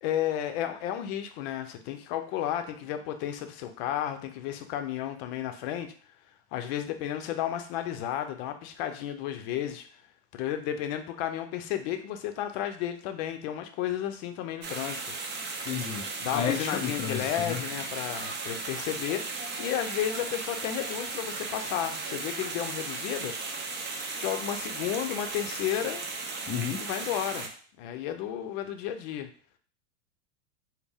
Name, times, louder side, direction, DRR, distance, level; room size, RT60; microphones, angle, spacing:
voice 1, 0.0-5.9 6.5-9.9 10.3-15.1 16.2-23.4 24.2-26.0 26.8-27.5 27.8-29.3, left 10 dB, 60° left, 7 dB, 0.7 m, -32 dB
sound 1, 14.6-27.5, right 3 dB, 30° right, 0.8 m, -36 dB
voice 2, 15.7-17.6 26.5-26.8, left 8 dB, 20° left, 5 dB, 0.4 m, -32 dB
4.2 x 2.1 x 3.5 m, 0.43 s
hypercardioid pair, 110°, 35 cm